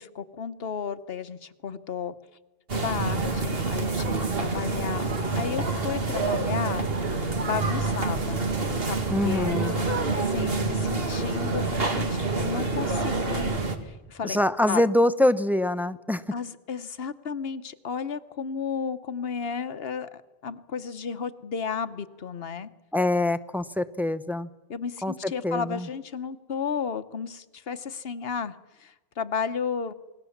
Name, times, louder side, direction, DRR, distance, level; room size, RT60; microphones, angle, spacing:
voice 1, 0.0-2.1 2.8-5.1 5.4-6.9 7.4-8.5 8.9-9.9 10.2-13.6 13.8-14.4 14.7-14.8 16.3-22.7 24.7-29.9, left 6 dB, 65° left, 12 dB, 1.2 m, -33 dB
sound 1, 2.7-13.8, right 3 dB, 65° right, 2.3 m, -27 dB
voice 2, 9.1-9.7 14.2-16.2 22.9-24.5 25.0-25.9, left 1 dB, ahead, 11 dB, 0.7 m, -24 dB
28.0 x 20.0 x 7.2 m, 1.2 s
omnidirectional pair, 1.1 m